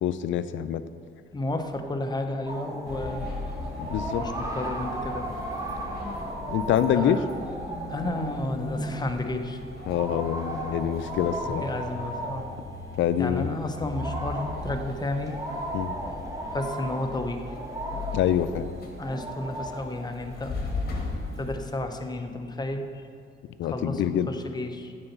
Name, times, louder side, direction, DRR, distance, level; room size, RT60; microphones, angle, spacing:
voice 1, 0.0-0.8 3.8-4.2 6.5-7.2 9.9-11.7 13.0-13.6 15.7-15.9 18.1-18.7 23.6-24.3, left 10 dB, 75° left, 13 dB, 0.4 m, -25 dB
voice 2, 1.3-3.3 4.2-5.3 6.9-7.3 7.9-9.6 11.4-12.5 13.2-15.4 16.5-17.5 19.0-20.6 21.4-22.9 23.6-24.9, left 2 dB, 20° left, 5 dB, 0.7 m, -32 dB
sound 1, 2.5-21.8, right 1 dB, 15° right, 1.1 m, -36 dB
sound 2, 2.9-21.6, left 3 dB, 50° left, 1.4 m, -38 dB
8.6 x 4.0 x 6.7 m, 2.3 s
cardioid pair, 90°, 20 cm